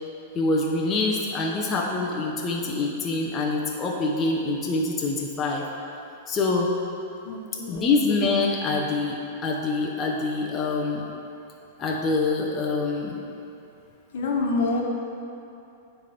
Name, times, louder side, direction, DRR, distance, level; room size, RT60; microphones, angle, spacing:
voice 1, 0.3-5.6 6.3-6.7 7.7-11.0 11.8-13.2, left 3 dB, 25° left, -2 dB, 0.7 m, -25 dB
voice 2, 7.2-7.8 14.1-14.8, left 3 dB, 75° left, -1 dB, 1.1 m, -26 dB
9.0 x 3.4 x 5.8 m, 2.7 s
supercardioid pair, 145°, 0 cm